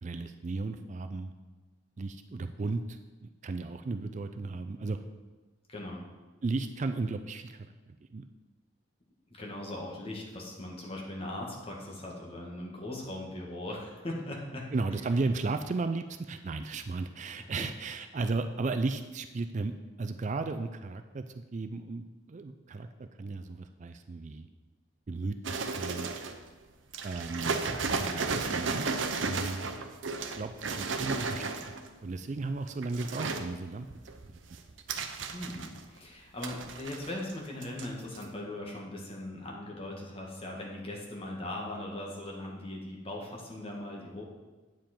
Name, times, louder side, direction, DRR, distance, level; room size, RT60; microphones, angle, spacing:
voice 1, 0.0-1.3 2.0-5.0 6.4-8.2 14.7-19.7 20.0-24.5 25.1-26.1 27.0-27.6 28.0-28.9 29.2-29.7 30.4-31.5 32.0-33.9 34.3-34.4, right 3 dB, 40° right, 9 dB, 0.4 m, -35 dB
voice 2, 5.7-6.0 9.3-14.7 17.4-17.7 35.3-44.2, left 1 dB, 30° left, -2 dB, 1.7 m, -39 dB
sound 1, 25.4-26.4 26.9-31.9 32.6-33.5 33.9-36.0 36.4-37.4 37.6-37.9 38.1-38.2, right 4 dB, 80° right, 0.7 m, -34 dB
9.0 x 7.4 x 4.4 m, 1.3 s
head